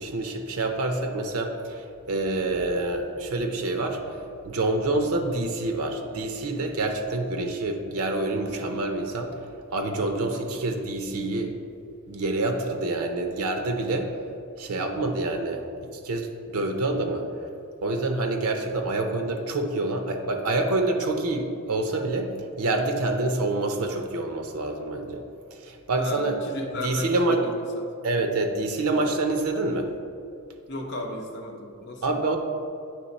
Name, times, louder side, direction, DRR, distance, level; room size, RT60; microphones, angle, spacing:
voice 1, 0.0-9.4 9.7-11.5 12.1-14.1 14.6-17.3 17.8-25.2 25.6-26.4 26.8-27.4 28.0-29.9 32.0-32.4, right 2 dB, 90° right, 5 dB, 0.6 m, -27 dB
voice 2, 26.0-27.5 27.8-27.9 30.7-32.2, left 1 dB, 55° left, 1 dB, 0.8 m, -35 dB
9.1 x 3.1 x 4.1 m, 2.4 s
head